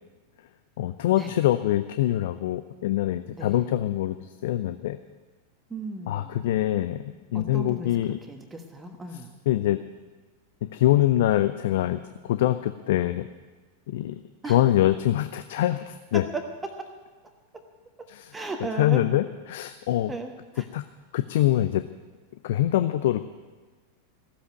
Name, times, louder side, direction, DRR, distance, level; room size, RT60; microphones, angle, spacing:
voice 1, 0.8-5.0 6.1-7.0 7.3-8.2 9.5-9.8 10.6-13.3 13.9-16.2 18.1-18.3 18.8-20.1 20.7-20.8 21.1-21.8 22.4-23.2, left 13 dB, 55° left, 11 dB, 0.5 m, -24 dB
voice 2, 3.3-3.7 5.7-6.4 7.3-9.3 14.4-14.6 16.1-16.4 17.5-17.6 18.0-19.0 20.1-20.7, right 2 dB, 10° right, 5 dB, 1.3 m, -36 dB
15.0 x 8.2 x 9.4 m, 1.3 s
figure-of-eight pair, 90°, 0 cm